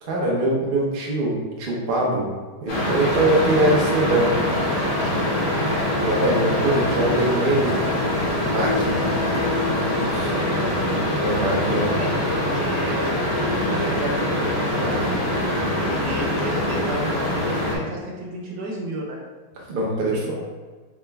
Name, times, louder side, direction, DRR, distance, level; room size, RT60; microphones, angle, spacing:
voice 1, 0.0-2.3 2.6-4.3 6.0-9.0 10.1-10.3 11.2-11.9 19.7-20.2, right 1 dB, 45° right, -3 dB, 0.7 m, -23 dB
sound 1, 2.7-17.8, left 1 dB, 55° left, 1.1 m, -23 dB
sound 2, 3.8-10.1, left 5 dB, 80° left, 1.7 m, -33 dB
voice 2, 5.4-5.9 10.3-10.8 11.8-12.1 12.5-15.2 15.9-19.2 20.1-20.4, right 2 dB, 75° right, -2 dB, 1.3 m, -32 dB
4.8 x 2.1 x 3.4 m, 1.4 s
omnidirectional pair, 1.9 m